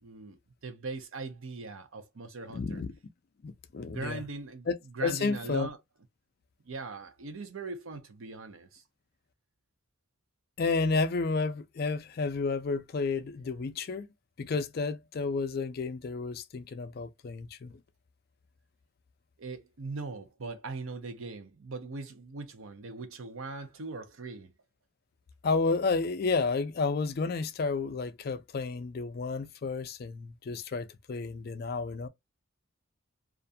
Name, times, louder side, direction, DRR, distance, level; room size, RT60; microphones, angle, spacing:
voice 1, 0.0-2.8 3.9-4.7 4.9-5.8 6.7-8.8 19.4-24.5, right 3 dB, 75° right, 0.6 m, -40 dB
voice 2, 2.5-2.9 3.4-4.2 4.7-5.7 10.6-14.1 14.4-17.7 25.4-32.1, left 4 dB, 45° left, 0.4 m, -31 dB
2.5 x 2.2 x 2.5 m
head